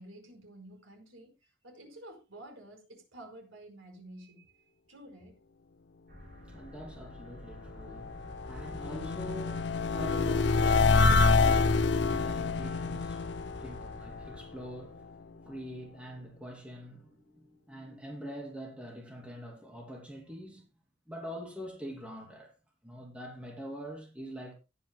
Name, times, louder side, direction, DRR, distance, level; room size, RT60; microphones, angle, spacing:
voice 1, 0.0-5.3, right 1 dB, 85° right, 4.7 m, -51 dB
sound 1, 6.1-14.4, equal, 45° right, 7.1 m, -51 dB
voice 2, 6.2-20.6 21.1-22.5 22.8-24.5, equal, 5° right, 2.9 m, -44 dB
sound 2, 7.6-14.8, left 4 dB, 60° left, 0.5 m, -27 dB
18.0 x 9.7 x 2.2 m
head